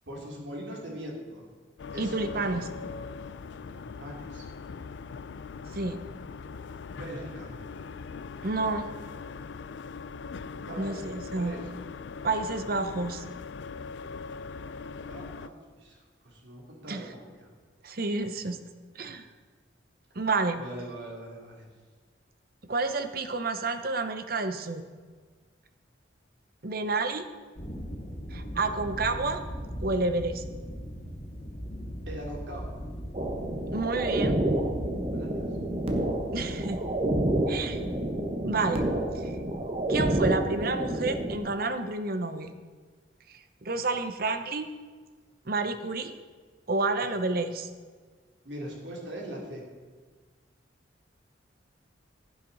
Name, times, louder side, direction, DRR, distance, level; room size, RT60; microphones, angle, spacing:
voice 1, 0.1-1.5 1.9-2.6 3.7-4.5 6.9-7.5 10.6-11.6 15.1-17.5 20.5-21.7 32.1-32.8 35.1-35.5 47.0-47.1 48.4-49.6, right 1 dB, 70° right, -1 dB, 3.0 m, -41 dB
sound 1, 1.8-15.5, left 5 dB, 70° left, 0.4 m, -41 dB
voice 2, 2.0-2.7 5.7-6.0 8.4-8.9 10.8-11.6 12.2-13.2 16.9-17.0 17.8-18.6 18.9-19.3 20.1-20.6 22.7-24.8 26.6-27.2 28.3-29.4 29.8-30.4 33.7-34.4 36.3-36.8 37.5-37.8 38.4-38.8 39.1-39.3 39.9-42.5 43.3-44.7 45.5-46.1 46.7-47.7, right 3 dB, 50° right, 9 dB, 0.8 m, -30 dB
sound 2, 27.6-38.1, equal, 35° left, 2.9 m, -39 dB
sound 3, 33.1-41.4, right 1 dB, 30° right, 1.2 m, -29 dB
15.5 x 9.1 x 4.1 m, 1.5 s
head